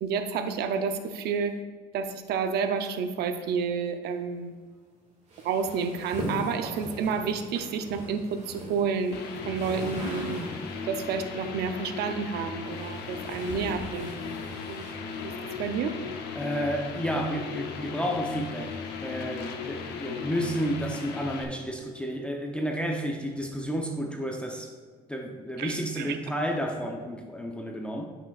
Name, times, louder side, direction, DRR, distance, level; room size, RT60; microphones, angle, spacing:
voice 1, 0.0-1.5 1.9-4.5 5.4-10.4 10.9-14.9 15.2-15.3 15.6-15.9 25.6-26.2, right 6 dB, 75° right, 8 dB, 0.6 m, -30 dB
sound 1, 5.3-10.9 12.0-15.5, equal, 40° right, 1.9 m, -40 dB
sound 2, 9.1-21.4, left 5 dB, 80° left, 0.8 m, -37 dB
voice 2, 16.3-18.8 19.0-24.7 25.1-28.1, equal, 5° left, 1 dB, 0.7 m, -31 dB
9.4 x 5.9 x 2.4 m, 1.5 s
cardioid pair, 110°, 17 cm